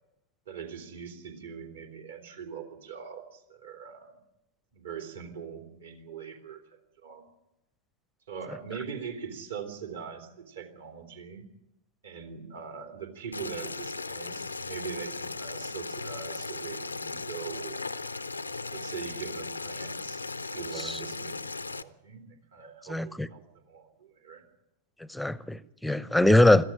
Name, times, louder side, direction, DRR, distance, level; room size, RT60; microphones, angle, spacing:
voice 1, 0.5-4.1 4.7-6.6 7.0-7.2 8.3-11.5 12.0-18.1 18.7-21.4 21.7-23.4 23.7-24.4, right 7 dB, 65° right, 3.3 m, -42 dB
Boiling, 13.3-21.8, left 3 dB, 80° left, 0.7 m, -37 dB
voice 2, 22.9-23.3 25.1-26.6, left 1 dB, 5° left, 0.8 m, -22 dB
21.5 x 14.0 x 10.0 m
figure-of-eight pair, 90°, 0 cm